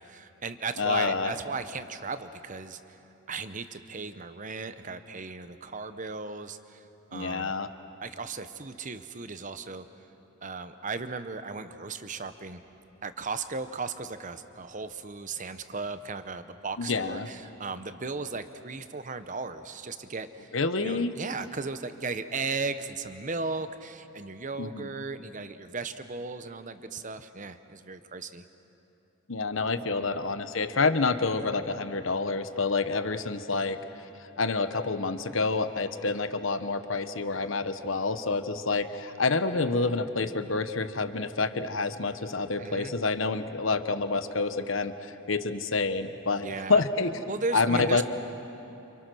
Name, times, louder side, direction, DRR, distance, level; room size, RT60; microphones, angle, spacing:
voice 1, 0.0-3.0 3.3-6.8 7.1-7.5 8.0-9.8 10.4-12.6 13.0-20.5 20.8-28.4 29.9-30.2 42.6-43.0 46.4-46.8 47.3-48.0, right 4 dB, 35° right, 11 dB, 1.0 m, -36 dB
voice 2, 0.8-1.3 7.1-7.7 16.8-17.3 20.5-21.2 24.6-24.9 29.3-33.8 34.4-47.2 47.5-48.0, left 3 dB, 65° left, 10 dB, 1.1 m, -28 dB
29.5 x 28.0 x 6.3 m, 3.0 s
head